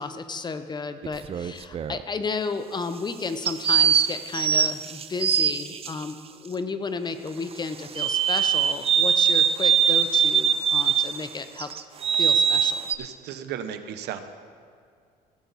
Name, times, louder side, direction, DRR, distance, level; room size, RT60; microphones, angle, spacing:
voice 1, 0.0-11.7 12.2-12.8, left 4 dB, 25° left, 10 dB, 0.7 m, -33 dB
sound 1, 1.0-2.0 3.5-5.9 8.0-11.2 11.6-13.0, right 8 dB, 35° right, 0.5 m, -22 dB
voice 2, 13.0-14.2, right 9 dB, 80° right, 10 dB, 0.8 m, -35 dB
17.0 x 7.9 x 4.1 m, 2.3 s
cardioid pair, 110°, 17 cm